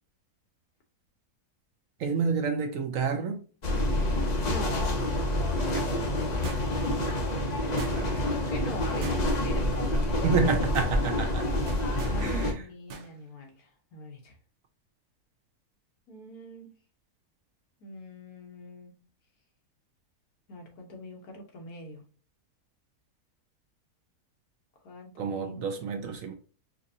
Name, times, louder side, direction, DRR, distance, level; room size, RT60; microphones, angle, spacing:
voice 1, 2.0-3.4 5.7-5.9 7.9-8.2 10.2-11.5 12.2-12.6 25.2-26.3, right 5 dB, 65° right, 1.0 m, -29 dB
sound 1, 3.6-12.5, left 1 dB, 45° left, 0.5 m, -27 dB
voice 2, 4.4-5.0 5.6-7.0 8.1-9.2 9.4-9.7 10.1-10.8 11.9-14.4 16.1-16.7 17.8-18.9 20.5-22.0 24.8-26.2, left 1 dB, 75° left, 1.5 m, -43 dB
sound 2, 6.4-6.9 7.8-8.3 9.0-9.5 9.9-10.1 10.5-11.0 11.7-12.2 12.9-13.1 13.4-13.5, right 5 dB, 80° right, 1.4 m, -42 dB
4.5 x 2.6 x 2.7 m
omnidirectional pair, 1.6 m